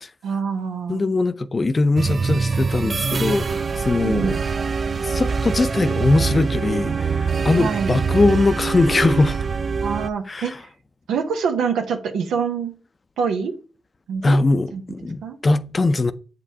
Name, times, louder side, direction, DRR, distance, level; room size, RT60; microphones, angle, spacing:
voice 1, 0.2-1.1 4.0-4.4 7.6-8.0 9.8-10.5 11.1-12.7 13.2-13.5 14.1-14.4 14.7-14.8 15.2-15.4, right 6 dB, 90° right, 0.8 m, -25 dB
voice 2, 0.9-4.4 5.0-9.4 10.3-10.6 14.2-16.1, left 3 dB, 40° left, 0.5 m, -21 dB
sound 1, 2.0-10.1, right 5 dB, 50° right, 0.3 m, -24 dB
7.7 x 5.3 x 2.8 m
cardioid pair, 60°, 0 cm